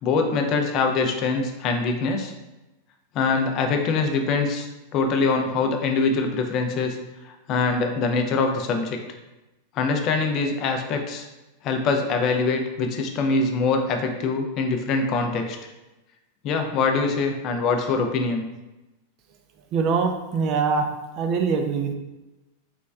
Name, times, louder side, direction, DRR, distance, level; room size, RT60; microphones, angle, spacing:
voice 1, 0.0-2.3 3.1-4.7 4.9-7.0 7.2-9.0 9.8-11.3 11.6-15.6 16.4-18.4, left 4 dB, 40° left, 4 dB, 0.4 m, -23 dB
voice 2, 19.7-20.9 21.2-21.9, right 5 dB, 40° right, 5 dB, 0.4 m, -23 dB
3.4 x 3.0 x 2.3 m, 1.0 s
figure-of-eight pair, 90°, 0 cm